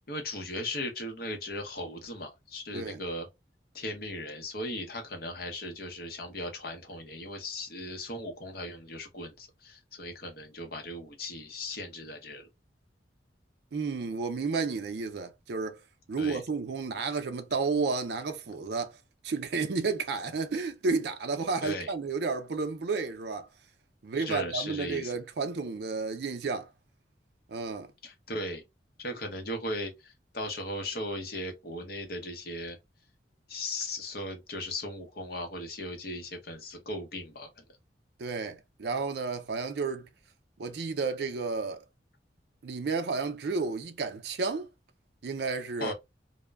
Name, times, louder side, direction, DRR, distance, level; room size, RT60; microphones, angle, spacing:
voice 1, 0.1-3.3 3.7-12.5 16.2-16.4 21.6-21.9 24.3-25.1 28.0-28.6 29.0-32.8 33.5-37.5 45.8-45.9, left 1 dB, 55° left, 0.7 m, -37 dB
voice 2, 13.7-15.8 16.1-19.0 19.2-23.5 24.0-26.7 27.5-27.9 38.2-40.1 40.6-41.8 42.6-44.7 45.2-45.9, right 4 dB, 65° right, 0.4 m, -32 dB
2.1 x 2.0 x 3.3 m
head